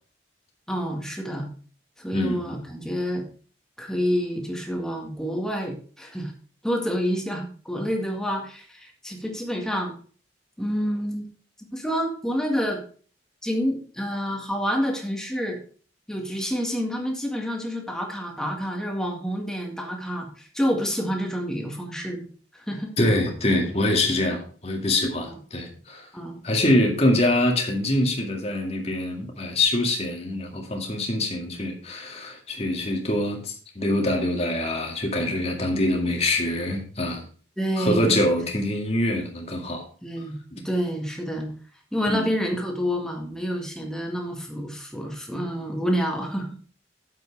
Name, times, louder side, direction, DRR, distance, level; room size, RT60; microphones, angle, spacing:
voice 1, 0.7-1.5 2.0-3.2 3.8-6.3 6.6-9.9 10.6-11.3 11.7-12.8 13.4-15.6 16.1-22.3 22.5-22.9 25.2-25.4 26.1-26.4 37.6-38.2 40.0-41.5 41.9-46.5, equal, 5° left, 1 dB, 2.0 m, -28 dB
voice 2, 2.1-2.6 23.0-26.1 26.4-37.2 37.8-39.8 42.1-42.3, left 1 dB, 35° left, 1 dB, 2.1 m, -24 dB
8.9 x 7.7 x 4.7 m, 0.42 s
head